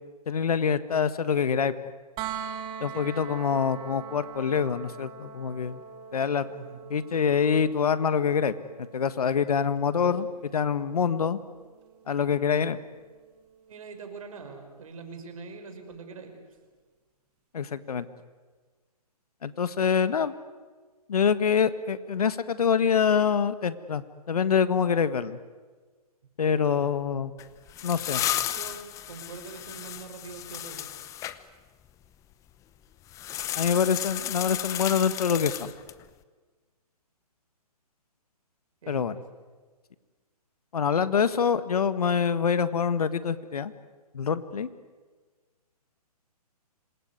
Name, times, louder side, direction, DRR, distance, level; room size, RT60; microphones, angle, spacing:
voice 1, 0.3-1.7 2.8-5.8 6.1-6.5 6.9-8.5 8.9-11.4 12.1-12.8 17.5-18.1 19.4-20.3 21.1-25.4 26.4-27.3 27.8-28.3 33.6-35.7 38.9-39.2 40.7-43.7 44.1-44.7, left 7 dB, 70° left, 13 dB, 1.7 m, -25 dB
sound 1, 2.2-14.0 15.9-16.0, right 7 dB, 25° right, 2.1 m, -43 dB
voice 2, 6.4-6.8 10.0-10.3 13.7-16.3 26.6-26.9 28.2-30.9 38.8-39.2, right 4 dB, 60° right, 6 dB, 5.8 m, -43 dB
sound 2, 27.4-31.4 33.1-36.0, left 12 dB, 15° left, 0.9 m, -33 dB
26.5 x 21.0 x 9.6 m, 1.4 s
hypercardioid pair, 140°, 20 cm